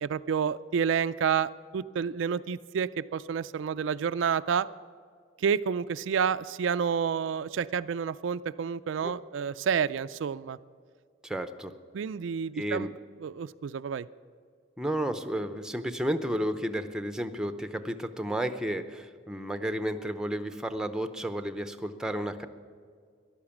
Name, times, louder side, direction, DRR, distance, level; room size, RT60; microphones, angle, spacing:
voice 1, 0.0-4.7 5.4-10.6 11.9-12.9 13.2-14.1, right 7 dB, 75° right, 13 dB, 0.4 m, -29 dB
voice 2, 11.2-11.7 12.5-12.9 14.8-22.5, equal, 5° right, 9 dB, 0.6 m, -32 dB
14.0 x 11.0 x 7.2 m, 2.1 s
head